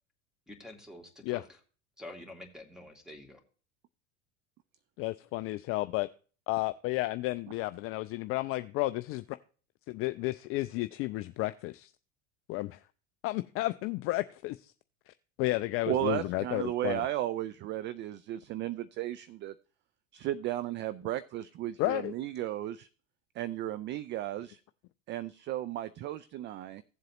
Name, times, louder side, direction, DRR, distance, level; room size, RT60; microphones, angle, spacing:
voice 1, 0.5-1.4 2.0-3.4, left 1 dB, ahead, 4 dB, 2.5 m, -47 dB
voice 2, 5.0-6.1 6.5-9.4 9.9-11.9 12.5-12.8 13.2-14.7 15.1-17.0 21.8-22.1, left 19 dB, 35° left, 12 dB, 0.4 m, -32 dB
voice 3, 15.9-19.5 20.1-22.9 23.4-24.6 25.1-26.8, right 13 dB, 30° right, 15 dB, 0.4 m, -34 dB
16.0 x 7.5 x 3.0 m, 0.39 s
hypercardioid pair, 80°, 39 cm